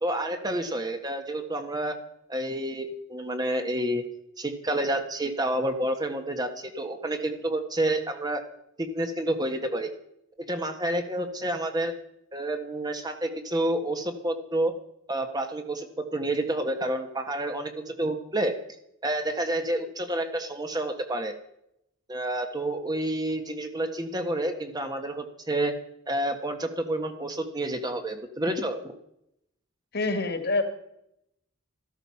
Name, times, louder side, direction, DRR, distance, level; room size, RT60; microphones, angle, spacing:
voice 1, 0.0-2.0 2.3-4.0 4.4-8.4 8.8-9.9 10.5-11.9 12.3-14.7 15.1-15.9 16.1-18.5 19.0-21.3 22.1-25.7 26.1-28.8, right 1 dB, 20° right, 6 dB, 1.4 m, -29 dB
voice 2, 29.9-30.6, left 3 dB, 50° left, 8 dB, 2.2 m, -26 dB
14.0 x 13.0 x 5.8 m, 0.77 s
head